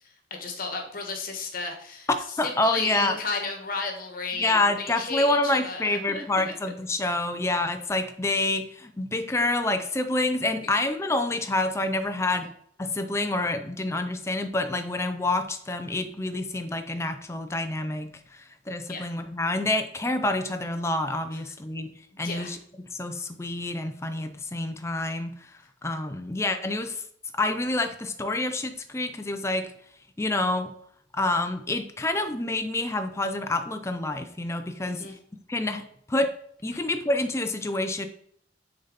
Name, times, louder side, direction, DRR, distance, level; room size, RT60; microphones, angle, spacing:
voice 1, 0.3-2.1 2.4-6.5 18.9-19.1 22.1-22.5 34.9-35.1, left 4 dB, 50° left, 3 dB, 1.3 m, -33 dB
voice 2, 2.4-3.2 4.3-12.5 12.8-21.9 22.2-22.6 22.9-25.4 25.8-27.0 27.3-29.7 30.2-30.7 31.1-35.0 35.5-36.3 36.6-38.1, left 2 dB, 15° left, 7 dB, 0.5 m, -27 dB
6.7 x 4.0 x 4.1 m, 0.66 s
head